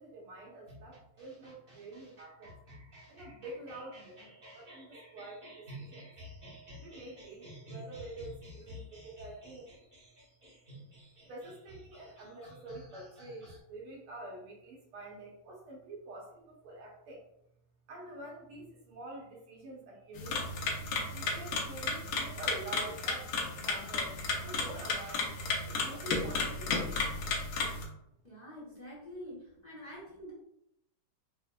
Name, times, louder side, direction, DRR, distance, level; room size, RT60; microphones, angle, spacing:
voice 1, 0.0-2.5 3.1-6.0 6.8-9.7 11.3-17.2 17.9-24.1 24.4-25.3 25.7-26.9, right 2 dB, 80° right, -2 dB, 1.9 m, -47 dB
sound 1, 0.7-13.6, equal, 45° right, 0.6 m, -52 dB
sound 2, 20.1-27.8, left 3 dB, 75° left, 1.5 m, -34 dB
voice 2, 28.2-30.3, equal, 25° left, -7 dB, 0.9 m, -46 dB
5.1 x 2.6 x 2.3 m, 0.78 s
omnidirectional pair, 2.4 m